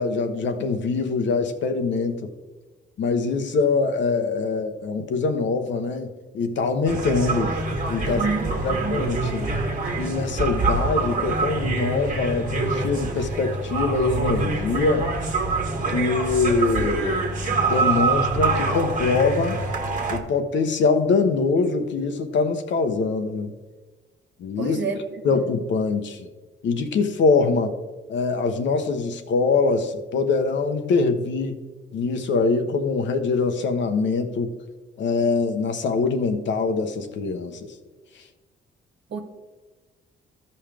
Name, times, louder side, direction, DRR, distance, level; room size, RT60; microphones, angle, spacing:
voice 1, 0.0-2.3 3.0-7.6 7.9-8.2 8.6-9.5 10.0-15.1 15.9-17.2 17.7-19.6 20.1-23.5 24.4-24.8 25.2-26.3 26.6-27.8 28.1-31.6 31.9-34.5 35.0-37.6, left 4 dB, 70° left, 7 dB, 1.0 m, -23 dB
sound 1, 6.9-20.2, right 3 dB, 40° right, 1.5 m, -25 dB
voice 2, 8.1-9.1 24.6-25.4 39.1-39.2, right 4 dB, 65° right, 3 dB, 1.4 m, -29 dB
13.5 x 5.5 x 3.4 m, 1.3 s
cardioid pair, 90°, 20 cm